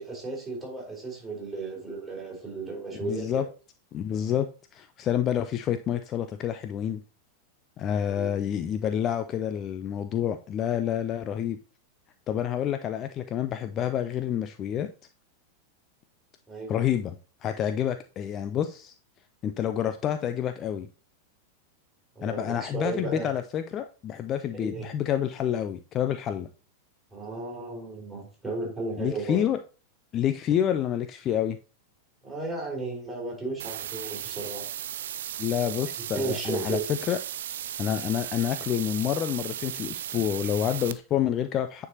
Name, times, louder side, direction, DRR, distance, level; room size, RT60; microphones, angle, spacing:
voice 1, 0.0-3.5 8.1-8.3 16.5-16.7 22.2-23.3 24.5-24.9 27.1-29.5 32.2-34.7 35.6-35.8 36.1-36.8, right 3 dB, 5° right, 3.9 m, -34 dB
voice 2, 3.0-3.5 3.9-7.0 7.8-11.6 12.3-14.9 16.7-17.2 17.4-18.9 19.4-20.9 22.2-26.5 29.0-29.6 30.1-31.6 35.4-37.2 37.8-41.9, left 10 dB, 30° left, 0.4 m, -28 dB
sound 1, 33.6-40.9, right 10 dB, 60° right, 0.3 m, -36 dB
9.4 x 4.5 x 2.8 m
figure-of-eight pair, 90°, 0 cm